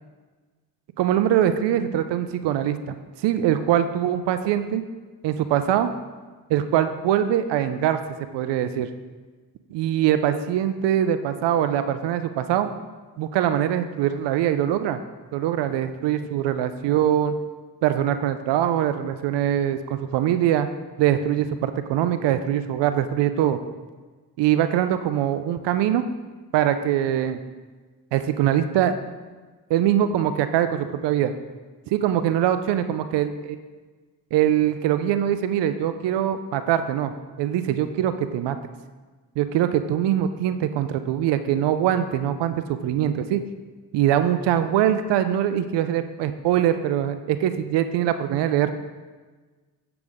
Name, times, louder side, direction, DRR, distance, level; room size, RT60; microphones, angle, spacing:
voice 1, 1.0-4.8 5.2-5.9 6.5-8.0 8.3-8.9 9.7-12.7 13.2-15.0 15.3-17.4 17.8-20.7 21.0-23.6 24.4-26.0 26.5-27.4 28.1-28.9 29.7-31.3 31.9-33.6 34.3-37.1 37.4-38.6 39.4-43.4 43.9-48.7, right 11 dB, 85° right, 10 dB, 0.5 m, -23 dB
7.8 x 7.0 x 3.5 m, 1.3 s
cardioid pair, 70°, 41 cm